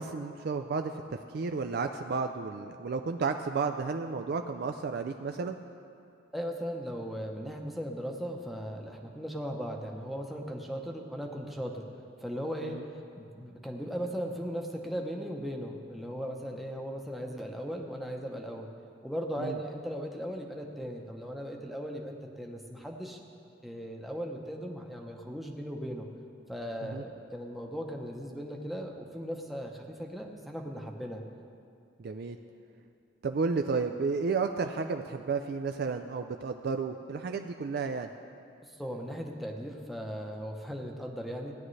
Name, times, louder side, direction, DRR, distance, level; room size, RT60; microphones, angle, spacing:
voice 1, 0.0-5.6 12.6-12.8 19.4-19.6 26.8-27.0 32.0-32.4 33.2-38.1, right 4 dB, 55° right, 7 dB, 0.4 m, -32 dB
voice 2, 6.3-11.9 12.2-18.7 19.0-23.2 23.6-26.1 26.5-31.2 38.7-41.5, equal, ahead, 0 dB, 0.7 m, -38 dB
16.5 x 10.0 x 3.2 m, 2.4 s
head